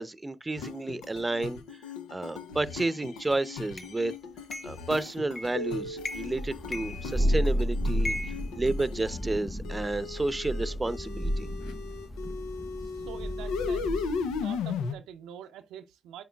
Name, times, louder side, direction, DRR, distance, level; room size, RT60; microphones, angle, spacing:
voice 1, 0.0-1.6 2.1-4.1 4.6-11.5, right 2 dB, 25° right, 0.7 m, -31 dB
sound 1, 0.6-9.2 9.6-14.9, left 5 dB, 90° left, 0.6 m, -37 dB
sound 2, 3.8-3.9 4.5-4.8 5.4-5.7 6.0-6.4 6.7-7.5 8.0-9.3, left 1 dB, 50° left, 1.1 m, -38 dB
Thunder, 6.1-14.6, equal, 30° left, 1.9 m, -32 dB
voice 2, 12.8-14.1 14.4-16.2, right 10 dB, 85° right, 0.5 m, -45 dB
9.2 x 4.6 x 2.3 m
hypercardioid pair, 40°, 0 cm